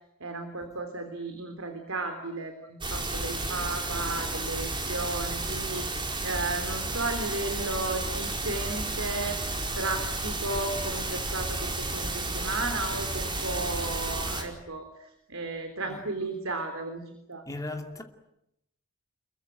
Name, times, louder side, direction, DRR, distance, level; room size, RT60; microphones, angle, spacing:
voice 1, 0.2-9.4 9.7-17.4, right 2 dB, 70° right, 3.5 m, -34 dB
sound 1, 2.8-14.4, right 2 dB, 25° right, 4.6 m, -32 dB
voice 2, 17.5-18.0, left 2 dB, 15° left, 2.5 m, -36 dB
28.5 x 22.5 x 9.3 m
head